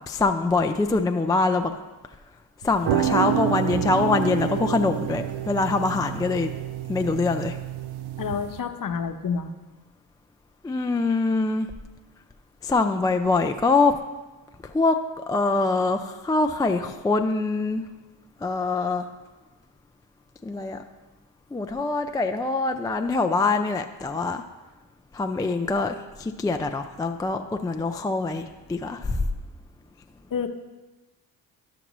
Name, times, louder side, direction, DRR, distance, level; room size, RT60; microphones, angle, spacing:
voice 1, 0.1-1.7 2.6-6.5 6.9-7.6 10.6-11.7 12.6-14.0 14.6-15.0 15.3-17.8 18.4-19.1 20.4-20.8 21.5-24.4 25.1-29.3, left 3 dB, 10° left, 5 dB, 0.3 m, -24 dB
sound 1, 2.6-8.6, right 10 dB, 55° right, 0.5 m, -28 dB
voice 2, 8.2-9.5 30.3-30.5, left 6 dB, 40° left, 7 dB, 0.8 m, -28 dB
12.0 x 6.0 x 3.0 m, 1.2 s
supercardioid pair, 60°, 49 cm